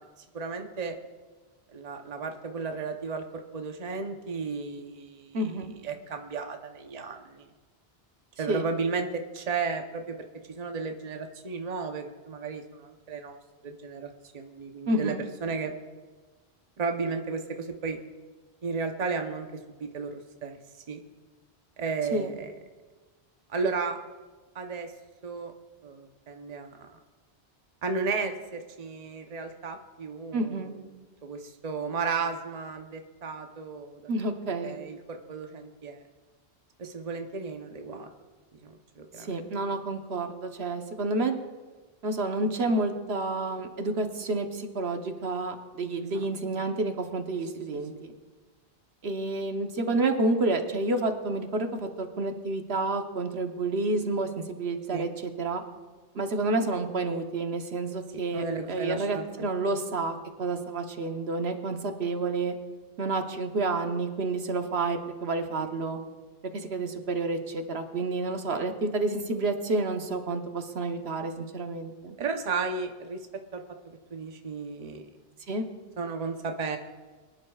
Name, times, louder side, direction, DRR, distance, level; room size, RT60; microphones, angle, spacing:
voice 1, 0.3-0.9 1.7-5.5 5.8-7.5 8.4-13.4 13.6-15.2 15.4-15.7 16.8-18.0 18.6-20.6 20.9-21.0 21.8-22.5 23.5-24.0 24.5-24.9 25.2-25.5 25.8-26.9 27.8-30.8 31.2-34.1 34.6-36.0 36.8-38.1 38.6-39.3 46.1-46.3 46.5-46.6 54.9-55.1 58.1-59.5 72.2-73.2 73.5-75.0 76.0-76.8, right 4 dB, 40° right, 4 dB, 0.9 m, -34 dB
voice 2, 5.3-5.7 8.5-8.7 14.9-15.2 22.1-22.3 30.3-30.7 34.1-34.8 39.2-41.3 42.0-48.1 49.0-55.6 56.1-62.6 63.0-66.0 66.5-72.2 75.5-75.6, right 2 dB, 75° right, 5 dB, 1.2 m, -29 dB
24.5 x 10.5 x 2.4 m, 1.3 s
omnidirectional pair, 1.1 m